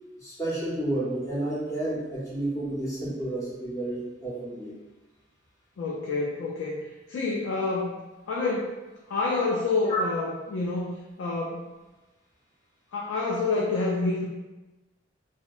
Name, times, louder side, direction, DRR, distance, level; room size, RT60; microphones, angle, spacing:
voice 1, 0.2-4.7 9.9-10.0, right 1 dB, 15° left, -7 dB, 0.5 m, -31 dB
voice 2, 5.8-6.8 7.1-8.0 8.3-8.7 9.1-10.9 11.2-11.6 12.9-14.3, left 3 dB, 80° left, -3 dB, 0.4 m, -28 dB
2.6 x 2.0 x 2.3 m, 1.1 s
head